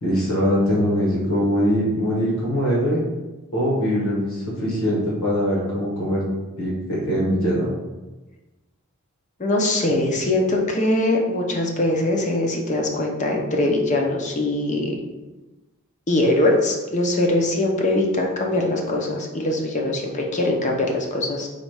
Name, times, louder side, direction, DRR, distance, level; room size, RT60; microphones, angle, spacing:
voice 1, 0.0-3.0 3.5-6.2 6.6-7.7, equal, 65° left, -5 dB, 1.2 m, -22 dB
voice 2, 9.4-15.0 16.1-21.5, left 1 dB, 35° left, 1 dB, 0.6 m, -22 dB
4.1 x 2.4 x 4.6 m, 1.1 s
head